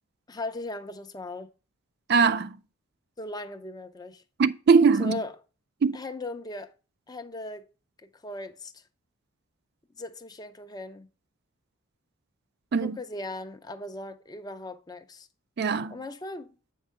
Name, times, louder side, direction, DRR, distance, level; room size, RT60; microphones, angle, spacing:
voice 1, 0.3-1.5 3.2-4.2 5.0-5.3 5.9-6.7 7.1-7.7 8.0-8.8 10.0-11.1 12.8-15.3 15.9-16.5, left 2 dB, 20° left, 0.5 m, -38 dB
voice 2, 2.1-2.6 4.4-5.2 5.8-6.0 12.7-13.0 15.6-15.9, right 5 dB, 50° right, 0.3 m, -21 dB
8.4 x 5.5 x 3.5 m
head